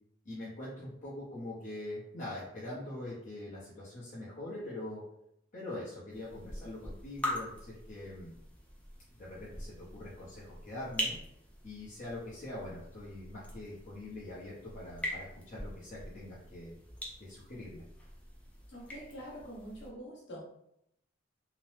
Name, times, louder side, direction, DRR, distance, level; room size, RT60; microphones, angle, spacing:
voice 1, 0.2-5.0 5.5-8.3 9.1-11.1 11.6-16.7 17.2-17.8, left 1 dB, 40° left, -9 dB, 0.7 m, -43 dB
sound 1, 6.1-19.9, equal, 5° left, 0.5 m, -43 dB
voice 2, 18.7-20.5, equal, 60° left, -5 dB, 1.1 m, -45 dB
2.8 x 2.0 x 3.2 m, 0.78 s
head